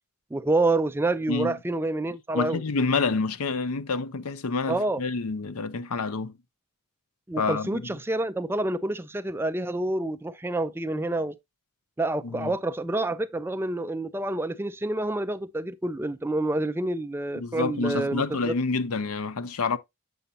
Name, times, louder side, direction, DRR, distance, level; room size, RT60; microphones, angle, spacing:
voice 1, 0.3-2.6 4.7-5.0 7.3-11.3 12.0-18.5, right 2 dB, 10° right, 0.3 m, -28 dB
voice 2, 2.3-6.3 7.4-8.0 12.2-12.5 17.3-19.8, left 4 dB, 85° left, 0.7 m, -28 dB
7.8 x 7.0 x 2.6 m
head